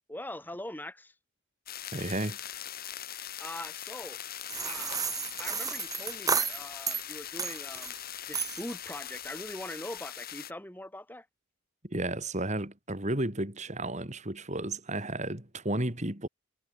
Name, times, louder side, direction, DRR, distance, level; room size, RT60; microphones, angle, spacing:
voice 1, 0.1-1.1 3.1-4.4 4.6-5.0 5.4-11.3, left 1 dB, 10° left, 2.5 m, -42 dB
sound 1, 1.7-10.5, left 11 dB, 45° left, 4.1 m, -41 dB
voice 2, 1.9-2.4 11.8-16.3, right 1 dB, 35° right, 2.7 m, -33 dB
sound 2, 4.5-7.0 7.4-8.0 8.3-8.7, right 6 dB, 15° right, 1.7 m, -32 dB
head